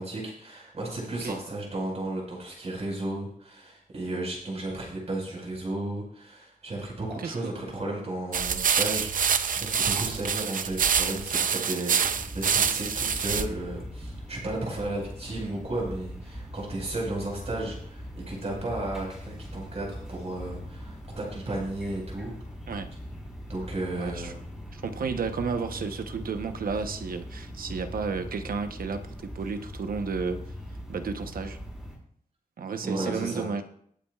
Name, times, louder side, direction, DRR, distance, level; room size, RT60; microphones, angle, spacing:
voice 1, 0.0-22.3 23.5-24.4 32.8-33.5, right 2 dB, 45° right, -2 dB, 5.0 m, -34 dB
voice 2, 7.2-7.6 22.7-22.9 23.9-24.3 24.7-30.4 30.9-31.6 32.6-33.6, right 5 dB, 85° right, 7 dB, 1.0 m, -32 dB
sound 1, 8.3-13.5, right 7 dB, 70° right, 0.6 m, -26 dB
sound 2, 12.0-32.0, equal, 5° right, 5.2 m, -41 dB
21.5 x 8.6 x 2.4 m, 0.65 s
wide cardioid pair, 155°, 15 cm